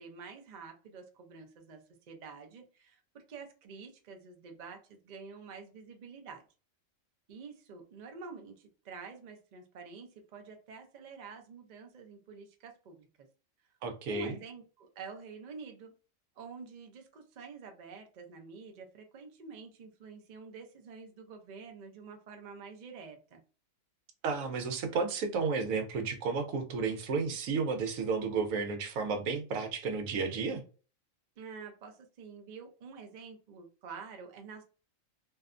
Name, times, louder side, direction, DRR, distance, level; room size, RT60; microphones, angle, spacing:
voice 1, 0.0-6.4 7.3-13.1 14.1-15.9 16.4-23.4 31.4-34.6, right 5 dB, 60° right, 0.4 m, -48 dB
voice 2, 13.8-14.4 24.2-30.6, right 4 dB, 85° right, 1.0 m, -32 dB
2.6 x 2.1 x 2.4 m
omnidirectional pair, 1.4 m